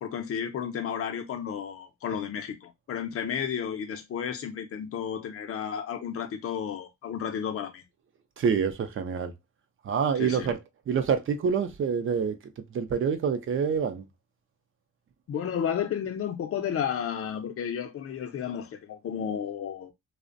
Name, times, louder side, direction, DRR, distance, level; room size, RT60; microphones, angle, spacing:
voice 1, 0.0-7.8 10.2-10.5 15.3-19.9, left 8 dB, 50° left, 0.6 m, -32 dB
voice 2, 8.4-9.3 9.8-10.6 10.9-12.4 12.7-14.0, right 6 dB, 45° right, 0.5 m, -26 dB
2.4 x 2.1 x 2.5 m
cardioid pair, 90°, 30 cm